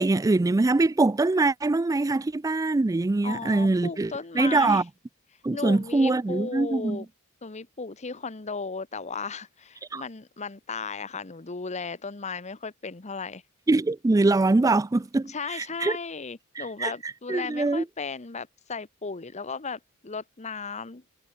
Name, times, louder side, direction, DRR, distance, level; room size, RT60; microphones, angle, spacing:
voice 1, 0.0-4.8 5.4-7.0 9.9-10.0 13.7-16.0 16.6-16.9 17.3-17.8, right 2 dB, 15° right, 0.3 m, -23 dB
voice 2, 3.2-4.8 5.5-7.1 7.4-13.4 15.3-21.0, left 4 dB, 30° left, 1.0 m, -35 dB
head